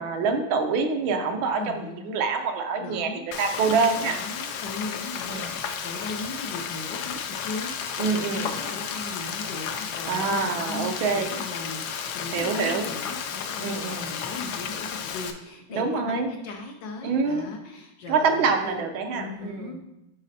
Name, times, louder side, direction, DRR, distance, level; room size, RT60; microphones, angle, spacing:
voice 1, 0.0-4.2 5.3-5.5 8.0-8.6 10.1-11.3 12.3-12.9 13.6-14.0 15.7-16.3 17.0-17.5 18.1-19.8, right 4 dB, 75° right, 5 dB, 1.4 m, -26 dB
voice 2, 1.6-2.1 2.8-3.3 4.0-18.8 19.1-19.8, left 3 dB, 75° left, 3 dB, 1.1 m, -38 dB
Frying (food), 3.3-15.3, left 7 dB, 90° left, 0.8 m, -33 dB
10.5 x 4.1 x 2.6 m, 0.88 s
omnidirectional pair, 2.3 m